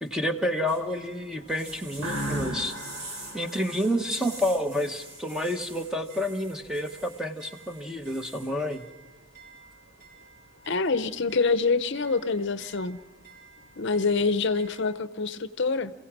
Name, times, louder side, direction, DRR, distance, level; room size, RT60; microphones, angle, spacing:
voice 1, 0.0-2.7 3.3-8.9, equal, 5° right, 5 dB, 1.0 m, -29 dB
sound 1, 0.7-14.8, right 2 dB, 50° right, 6.0 m, -47 dB
sound 2, 2.0-4.6, right 1 dB, 85° right, 3.5 m, -36 dB
voice 2, 10.7-13.0 13.8-15.9, left 4 dB, 55° left, 13 dB, 0.7 m, -26 dB
27.5 x 16.0 x 6.1 m, 1.3 s
head